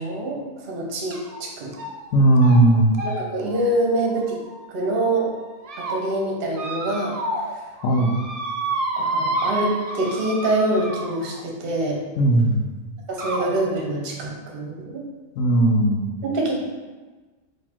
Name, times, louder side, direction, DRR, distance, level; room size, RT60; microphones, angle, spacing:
voice 1, 0.0-1.8 3.0-4.4 4.7-5.3 5.8-7.2 9.0-12.0 13.1-15.0 16.2-16.5, right 1 dB, 50° right, -1 dB, 0.9 m, -25 dB
sound 1, 1.1-1.4 1.7-2.1 2.4-2.6 2.9-4.9 5.4-6.0 6.5-7.5 7.8-11.4 12.4-12.5 13.2-13.5, right 2 dB, 70° right, 0.3 m, -29 dB
voice 2, 2.1-3.0 7.8-8.2 12.2-12.6 15.4-16.0, right 1 dB, 90° left, 2 dB, 1.0 m, -17 dB
4.1 x 2.8 x 4.3 m, 1.3 s
omnidirectional pair, 1.3 m